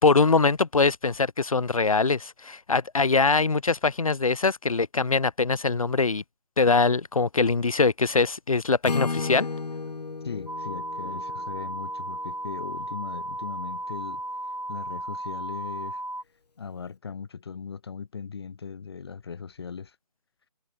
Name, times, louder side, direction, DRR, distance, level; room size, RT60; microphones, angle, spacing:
voice 1, 0.0-6.2 6.6-9.5 11.1-11.2, left 4 dB, 55° left, 1.4 m, -23 dB
Acoustic guitar / Strum, 8.8-12.8, left 4 dB, 80° left, 0.6 m, -34 dB
voice 2, 10.2-14.2 14.7-16.0 16.6-19.9, left 6 dB, 40° left, 1.3 m, -38 dB
sound 1, 10.5-16.2, right 1 dB, 85° right, 3.0 m, -35 dB
figure-of-eight pair, 150°, 21 cm